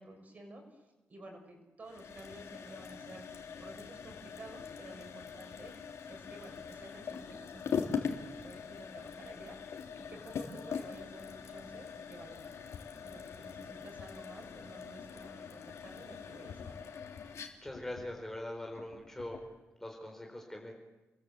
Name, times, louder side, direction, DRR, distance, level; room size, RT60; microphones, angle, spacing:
voice 1, 0.0-5.8 6.1-9.8 10.1-16.7, right 1 dB, 35° right, 3 dB, 6.5 m, -52 dB
sound 1, 1.8-19.5, left 6 dB, 80° left, 3.3 m, -42 dB
voice 2, 17.6-19.4 19.8-20.7, left 1 dB, 10° left, 1 dB, 4.2 m, -42 dB
29.0 x 22.0 x 8.2 m, 1.1 s
wide cardioid pair, 180°, 5 cm